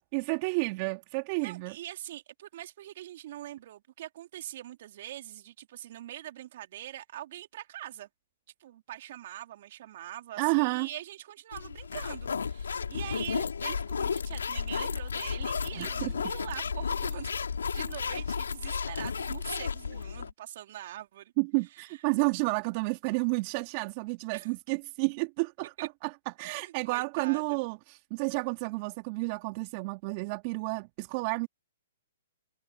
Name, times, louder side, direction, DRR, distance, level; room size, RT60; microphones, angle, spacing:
voice 1, 0.1-1.7 10.4-10.9 15.8-16.1 21.4-26.1 26.4-31.5, right 29 dB, 40° right, 2.8 m, -31 dB
voice 2, 1.4-8.1 8.6-17.3 17.7-21.3 21.7-22.0 24.3-24.5 25.8-25.9 26.4-27.6, right 13 dB, 55° right, 4.3 m, -43 dB
sound 1, 11.5-20.3, left 6 dB, 85° left, 5.6 m, -33 dB
hypercardioid pair, 140°, 0 cm